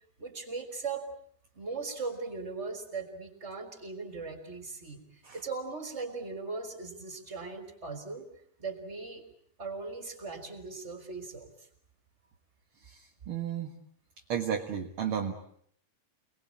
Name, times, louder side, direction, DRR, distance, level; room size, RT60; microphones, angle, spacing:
voice 1, 0.2-1.1 1.5-5.0 5.3-8.2 8.6-9.2 9.6-11.5, right 4 dB, 20° right, 7 dB, 3.8 m, -38 dB
voice 2, 13.3-13.7 14.3-15.3, right 8 dB, 50° right, 3 dB, 2.0 m, -32 dB
28.0 x 20.5 x 8.6 m, 0.65 s
omnidirectional pair, 4.1 m